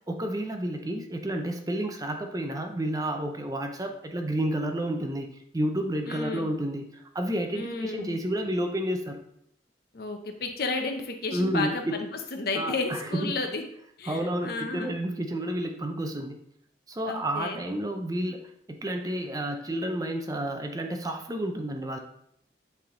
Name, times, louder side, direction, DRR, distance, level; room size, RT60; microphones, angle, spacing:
voice 1, 0.1-9.2 11.3-11.9 12.5-13.3 14.1-16.4 16.9-18.4 18.7-22.0, right 1 dB, 20° right, 4 dB, 0.5 m, -30 dB
voice 2, 6.1-6.5 7.5-8.2 9.9-12.1 12.3-13.6 14.0-14.9 17.1-17.6, left 3 dB, 55° left, 5 dB, 0.8 m, -32 dB
8.4 x 3.4 x 3.7 m, 0.71 s
head